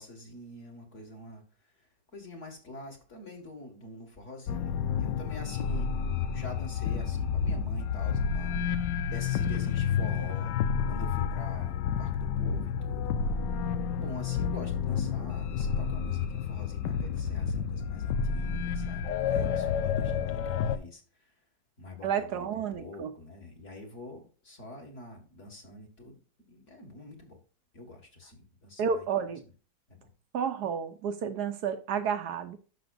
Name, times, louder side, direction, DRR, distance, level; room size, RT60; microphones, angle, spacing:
voice 1, 0.0-1.4 1.8-5.9 6.3-8.8 9.1-10.6 10.9-13.1 14.0-21.3 21.8-26.2 26.5-27.4 27.7-29.1 29.9-30.0, left 2 dB, 40° left, 2.0 m, -46 dB
sound 1, 4.5-20.8, left 7 dB, 80° left, 1.3 m, -30 dB
voice 2, 22.0-23.1 28.8-29.4 30.3-32.6, right 7 dB, 70° right, 1.1 m, -31 dB
12.0 x 6.0 x 2.5 m
omnidirectional pair, 1.9 m